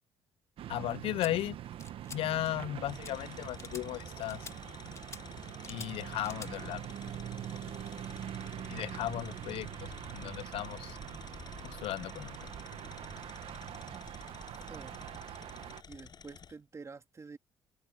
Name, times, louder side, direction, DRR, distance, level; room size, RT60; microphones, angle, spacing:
sound 1, 0.6-15.8, right 11 dB, 65° right, 1.2 m, -44 dB
voice 1, 0.7-1.6 2.1-4.5 5.7-6.8 8.7-9.7 10.1-11.0 11.6-12.4, left 14 dB, 70° left, 0.5 m, -35 dB
sound 2, 1.2-1.3 1.8-2.2 2.4-2.7 3.0-3.1 3.6-3.8 4.3-4.5 5.0-5.2 5.6-5.9 6.2-6.5, left 4 dB, 30° left, 1.6 m, -47 dB
Tools, 1.7-1.9 2.8-16.6, left 7 dB, 45° left, 7.2 m, -51 dB
voice 2, 15.9-17.4, right 4 dB, 30° right, 2.6 m, -48 dB
open air
cardioid pair, 90°, 10 cm